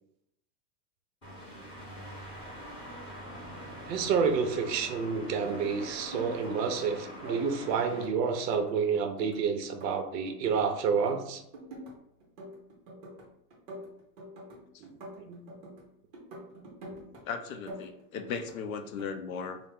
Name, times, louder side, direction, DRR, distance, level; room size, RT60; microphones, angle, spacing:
sound 1, 1.2-8.0, equal, 10° left, 0.9 m, -44 dB
voice 1, 3.9-11.4 14.8-15.4, right 6 dB, 80° right, 6 dB, 0.8 m, -29 dB
sound 2, 5.5-6.8 7.1-8.1 8.4-10.6 10.9-11.9 12.2-13.2 13.5-15.8 16.1-17.2 17.5-18.5 18.8-19.2, right 1 dB, 25° right, 0.6 m, -45 dB
voice 2, 17.3-19.6, left 6 dB, 55° left, 7 dB, 0.5 m, -37 dB
4.0 x 2.0 x 3.6 m, 0.77 s
supercardioid pair, 170°, 49 cm